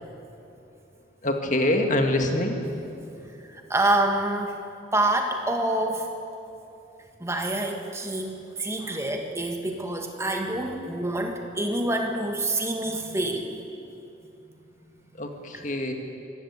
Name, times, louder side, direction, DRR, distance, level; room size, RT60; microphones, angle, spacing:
voice 1, 1.2-2.6 15.2-15.9, left 1 dB, 40° left, 4 dB, 2.0 m, -25 dB
voice 2, 3.5-4.6 4.9-6.1 7.2-13.5 15.5-15.6, right 1 dB, 15° right, 3 dB, 1.8 m, -27 dB
24.0 x 15.5 x 8.4 m, 2.8 s
head